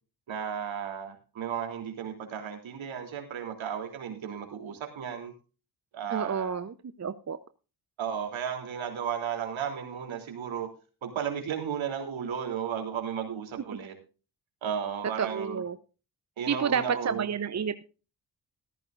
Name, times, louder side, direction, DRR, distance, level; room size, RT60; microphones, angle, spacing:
voice 1, 0.3-5.3 5.9-6.6 8.0-10.7 11.0-13.9 14.6-15.6 16.4-17.3, right 8 dB, 65° right, 4 dB, 3.4 m, -34 dB
voice 2, 6.1-7.4 13.7-13.8 15.2-15.8 16.5-17.8, right 7 dB, 35° right, 12 dB, 0.9 m, -30 dB
14.5 x 14.0 x 2.6 m, 0.33 s
hypercardioid pair, 45°, 49 cm